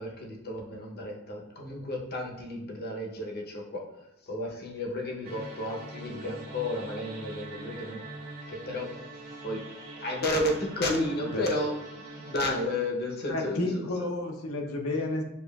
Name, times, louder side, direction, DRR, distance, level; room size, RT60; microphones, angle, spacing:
voice 1, 0.0-3.9 4.2-8.0 8.5-9.0 9.4-9.7 10.0-13.8, left 1 dB, 50° left, 0 dB, 0.8 m, -32 dB
sound 1, 5.2-12.3, right 2 dB, 85° right, 1.3 m, -43 dB
voice 2, 10.9-11.5 13.3-15.2, left 2 dB, 85° left, 3 dB, 0.7 m, -31 dB
6.7 x 2.4 x 2.3 m, 0.87 s
head